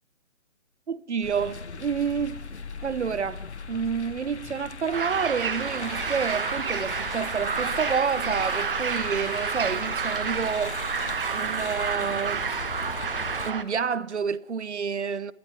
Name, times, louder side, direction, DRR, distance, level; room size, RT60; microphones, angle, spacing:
voice 1, 0.9-2.4 2.8-10.8 11.3-12.4 13.5-15.3, right 6 dB, 60° right, 0.9 m, -29 dB
sound 1, 1.2-13.5, left 5 dB, 60° left, 1.7 m, -38 dB
sound 2, 4.9-13.6, right 6 dB, 45° right, 1.3 m, -30 dB
30.0 x 11.0 x 9.6 m
figure-of-eight pair, 150°, 39 cm